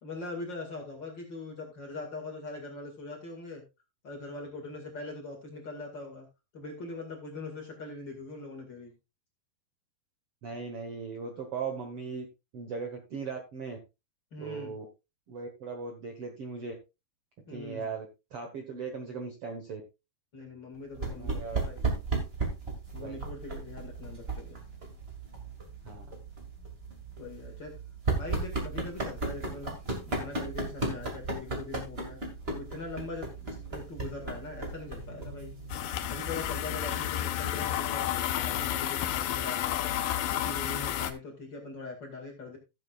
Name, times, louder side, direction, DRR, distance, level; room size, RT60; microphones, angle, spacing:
voice 1, 0.0-3.6 4.0-6.3 6.5-8.9 14.3-14.7 17.5-17.9 20.3-21.9 22.9-24.6 27.2-27.7 28.1-32.2 32.5-35.5 36.1-39.8 40.4-42.6, left 3 dB, 35° left, 1 dB, 2.2 m, -42 dB
voice 2, 10.4-12.3 12.5-13.8 14.4-14.8 15.3-16.7 17.5-18.1 18.3-19.8 21.0-21.6 22.9-23.2 25.8-26.1, right 5 dB, 60° right, 4 dB, 1.7 m, -38 dB
sound 1, 20.9-37.1, right 3 dB, 20° right, 1.7 m, -36 dB
sound 2, 35.7-41.1, left 12 dB, 75° left, 2.4 m, -31 dB
16.0 x 7.7 x 2.4 m, 0.26 s
omnidirectional pair, 4.1 m